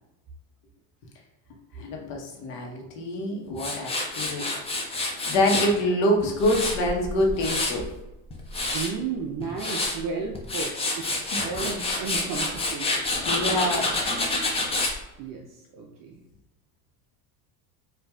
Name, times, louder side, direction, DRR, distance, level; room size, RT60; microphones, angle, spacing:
voice 1, 1.7-4.4 5.3-7.9 11.3-11.5 12.8-13.9, left 1 dB, 80° left, 1 dB, 1.1 m, -26 dB
Tools, 3.6-5.7 6.2-7.9 8.3-8.9 9.4-10.0 10.4-14.9, left 2 dB, 15° left, 0.4 m, -28 dB
voice 2, 8.7-12.9 13.5-13.8 15.2-16.2, right 5 dB, 45° right, 0 dB, 0.5 m, -34 dB
4.6 x 2.5 x 2.3 m, 0.96 s
supercardioid pair, 125°, 48 cm